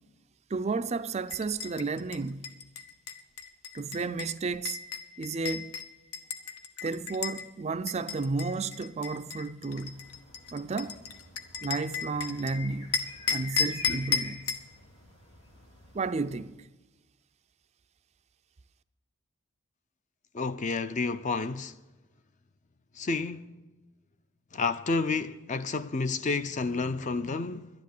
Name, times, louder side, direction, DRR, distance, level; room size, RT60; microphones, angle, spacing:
voice 1, 0.5-2.6 3.7-4.8 5.2-5.7 6.8-10.1 10.5-11.0 11.6-13.0 13.3-14.5 15.9-16.7, right 4 dB, 30° right, 0.4 m, -32 dB
sound 1, 1.3-7.4 7.9-12.5 12.9-14.7, left 6 dB, 85° left, 1.0 m, -34 dB
sound 2, 9.7-16.4, left 2 dB, 65° left, 3.1 m, -49 dB
voice 2, 20.3-21.7 23.0-23.5 24.5-27.7, left 4 dB, 35° left, 0.4 m, -30 dB
12.0 x 10.5 x 6.5 m
head